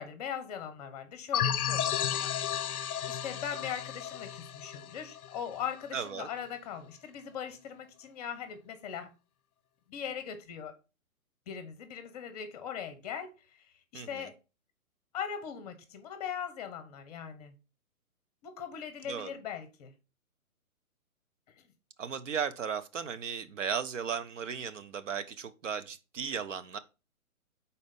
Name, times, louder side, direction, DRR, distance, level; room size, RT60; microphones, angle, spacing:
voice 1, 0.0-9.1 9.9-10.7 11.5-14.3 15.1-17.5 18.4-19.9 21.6-21.7, left 8 dB, 25° left, 0.9 m, -40 dB
sound 1, 1.3-5.8, left 9 dB, 80° left, 0.5 m, -33 dB
voice 2, 5.9-6.3 13.9-14.3 19.1-19.3 22.0-26.8, right 7 dB, 60° right, 0.7 m, -36 dB
5.2 x 4.2 x 5.2 m
hypercardioid pair, 145°, 44 cm